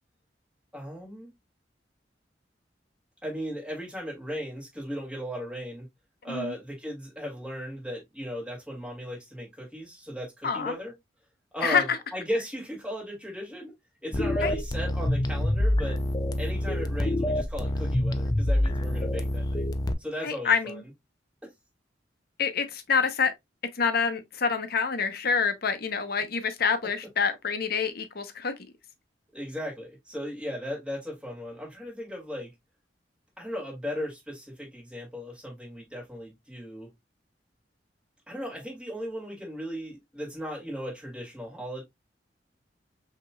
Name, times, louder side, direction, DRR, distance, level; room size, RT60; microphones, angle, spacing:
voice 1, 0.7-1.3 3.2-5.9 6.2-10.9 11.5-13.7 14.0-16.0 16.4-19.7 20.0-20.7 29.3-32.5 33.4-36.9 38.3-41.8, equal, 5° right, 2.4 m, -36 dB
voice 2, 10.4-10.7 11.6-12.0 14.4-14.6 20.2-20.8 22.4-23.3 23.7-28.5, left 5 dB, 60° left, 0.8 m, -27 dB
sound 1, 14.1-19.9, left 1 dB, 25° left, 0.4 m, -26 dB
5.9 x 2.9 x 2.3 m
head